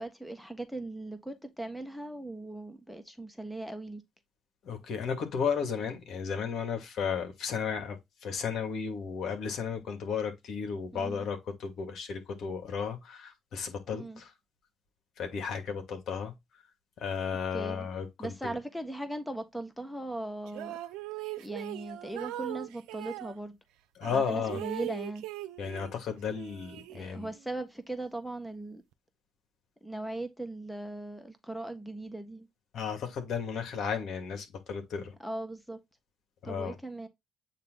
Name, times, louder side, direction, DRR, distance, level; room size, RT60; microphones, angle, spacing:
voice 1, 0.0-4.0 10.9-11.3 13.9-14.2 17.5-17.9 18.2-20.8 21.4-23.6 24.1-25.2 26.9-28.8 29.8-32.5 35.2-35.8 36.4-37.1, right 2 dB, 5° left, 1.3 m, -39 dB
voice 2, 4.6-14.3 15.2-16.3 17.0-18.6 24.0-24.6 25.6-27.3 32.7-35.1 36.4-36.8, left 6 dB, 65° left, 2.3 m, -34 dB
sound 1, 20.5-23.3 24.0-26.0 26.3-27.4, right 16 dB, 80° right, 0.6 m, -40 dB
8.5 x 3.2 x 3.9 m
supercardioid pair, 65°, 0 cm